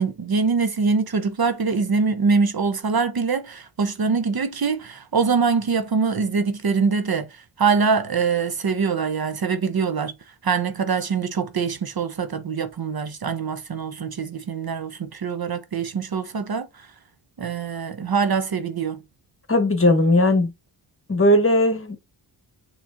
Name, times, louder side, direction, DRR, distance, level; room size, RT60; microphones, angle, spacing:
voice 1, 0.0-10.1 10.4-16.9 17.4-19.0, right 5 dB, 50° right, 0.8 m, -23 dB
voice 2, 19.5-20.5 21.1-22.0, left 1 dB, 25° left, 1.2 m, -18 dB
6.0 x 3.2 x 2.5 m
cardioid pair, 55°, 49 cm